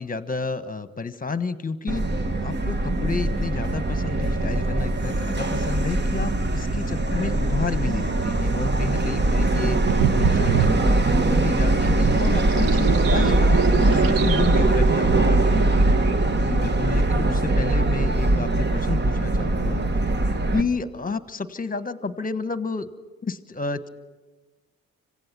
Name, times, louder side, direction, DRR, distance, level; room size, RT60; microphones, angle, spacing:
voice 1, 0.0-2.0 2.4-9.8 10.1-16.0 16.4-19.8 20.5-22.9 23.2-23.9, left 4 dB, 25° left, 13 dB, 1.3 m, -31 dB
Subway metro underground, 1.9-20.6, right 2 dB, 30° right, 1.4 m, -21 dB
sound 1, 9.8-16.1, right 10 dB, 70° right, 0.8 m, -29 dB
26.0 x 16.5 x 6.0 m, 1.2 s
hypercardioid pair, 50°, 36 cm